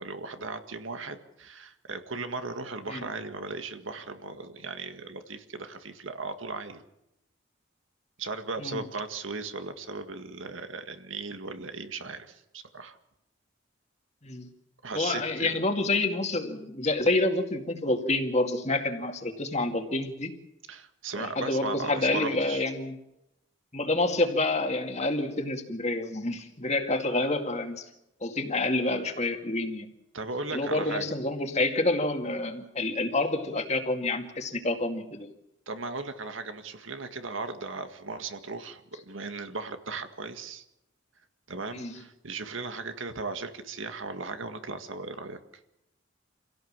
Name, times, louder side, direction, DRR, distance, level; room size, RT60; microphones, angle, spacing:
voice 1, 0.0-6.8 8.2-13.0 14.8-15.6 20.7-22.6 30.1-31.1 35.7-40.6 41.5-45.4, right 3 dB, 85° right, 8 dB, 1.9 m, -37 dB
voice 2, 14.9-20.4 21.2-23.0 23.7-27.9 28.2-29.9 30.5-35.3 41.7-42.0, left 2 dB, 35° left, 5 dB, 2.1 m, -28 dB
26.5 x 17.0 x 7.5 m, 0.87 s
head